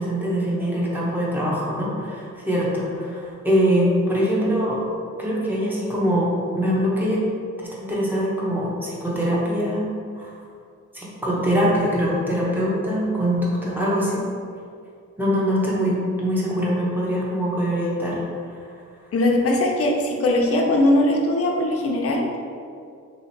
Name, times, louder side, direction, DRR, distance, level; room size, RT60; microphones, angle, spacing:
voice 1, 0.0-4.8 5.2-7.2 7.7-9.9 10.2-10.3 10.9-14.2 15.2-18.2, equal, 5° right, -6 dB, 0.8 m, -23 dB
voice 2, 19.1-22.4, left 1 dB, 50° left, 1 dB, 0.6 m, -20 dB
3.6 x 2.9 x 4.2 m, 2.3 s
wide cardioid pair, 160°, 31 cm